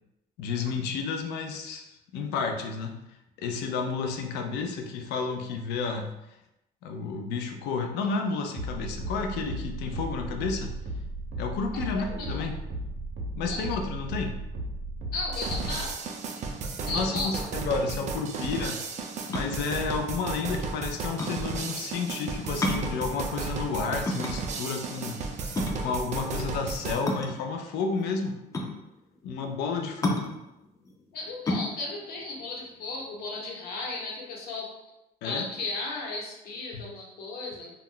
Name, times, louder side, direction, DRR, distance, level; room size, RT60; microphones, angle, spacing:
voice 1, 0.4-3.0 3.4-6.1 6.8-10.8 11.4-12.6 13.4-14.4 16.9-18.8 19.3-28.4 29.2-30.3 35.2-35.5 36.7-36.8, left 4 dB, 85° left, 5 dB, 0.4 m, -31 dB
sound 1, 8.5-15.9, right 1 dB, 80° right, 0.6 m, -35 dB
voice 2, 11.7-12.5 13.4-13.6 15.1-16.0 16.9-17.5 29.7-29.8 30.6-30.8 31.1-34.8 35.2-37.7, left 3 dB, 65° left, -2 dB, 0.9 m, -35 dB
sound 2, 15.3-27.0, right 4 dB, 45° right, 0.4 m, -34 dB
sound 3, 19.3-33.5, left 1 dB, 20° left, 0.4 m, -33 dB
2.2 x 2.1 x 3.6 m, 0.90 s
cardioid pair, 110°, 17 cm